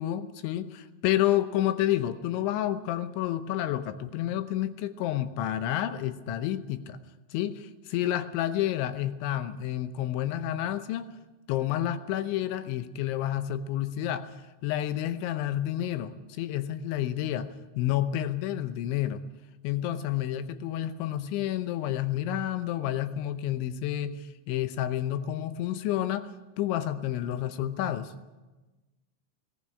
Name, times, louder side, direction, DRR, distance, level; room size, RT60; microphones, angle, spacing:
voice 1, 0.0-7.0 7.3-11.1 11.5-14.3 14.6-17.5 17.8-19.2 19.6-26.3 26.6-28.1, left 12 dB, 80° left, 11 dB, 3.1 m, -30 dB
18.5 x 15.0 x 9.7 m, 1.2 s
omnidirectional pair, 5.4 m